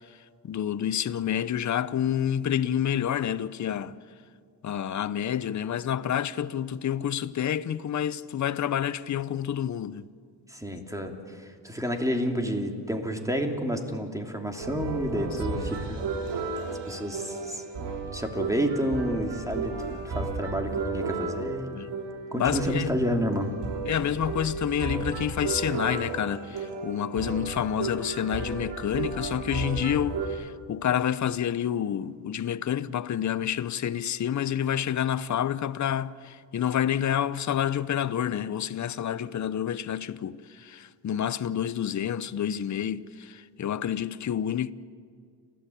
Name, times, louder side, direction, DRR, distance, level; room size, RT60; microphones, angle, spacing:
voice 1, 0.4-3.9 4.6-10.1 15.5-15.6 21.7-21.9 22.3-22.9 23.9-44.7, left 9 dB, 45° left, 0.7 m, -28 dB
voice 2, 10.5-16.4 16.7-17.7 18.1-21.8 22.3-23.5, equal, 10° right, 2.8 m, -30 dB
sound 1, 14.6-30.3, right 4 dB, 75° right, 2.8 m, -34 dB
30.0 x 12.5 x 8.6 m
cardioid pair, 85°, 42 cm